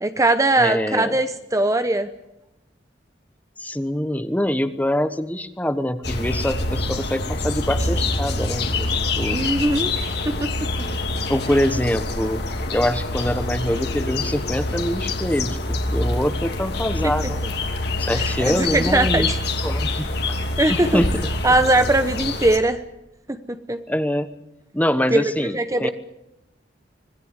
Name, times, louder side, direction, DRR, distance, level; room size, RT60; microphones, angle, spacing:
voice 1, 0.0-2.1 9.3-9.9 10.2-10.7 17.0-17.1 18.1-19.4 20.6-21.0 21.4-22.8 23.7-23.8 25.1-25.2 25.5-25.9, right 2 dB, 20° right, 9 dB, 0.9 m, -20 dB
voice 2, 0.6-1.2 3.6-9.4 11.3-12.4 12.7-17.4 18.0-19.3 19.6-20.3 20.7-21.1 23.9-24.3 24.7-25.9, equal, 10° left, 11 dB, 1.2 m, -24 dB
sound 1, 6.0-22.6, left 2 dB, 65° left, 2.8 m, -25 dB
25.5 x 18.0 x 8.1 m, 0.90 s
head